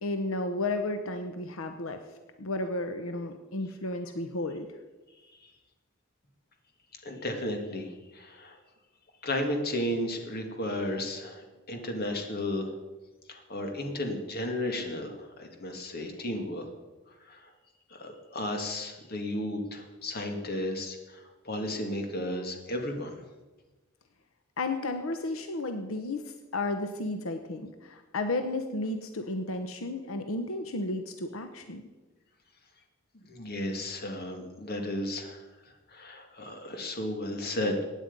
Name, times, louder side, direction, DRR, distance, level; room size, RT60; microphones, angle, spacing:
voice 1, 0.0-2.0 2.4-4.7 24.6-31.8, left 2 dB, 85° left, 7 dB, 0.9 m, -33 dB
voice 2, 7.0-8.6 9.2-12.8 13.3-16.7 17.2-17.5 17.9-23.2 33.1-37.8, left 1 dB, 50° left, 4 dB, 2.0 m, -34 dB
16.0 x 9.5 x 5.3 m, 1.2 s
head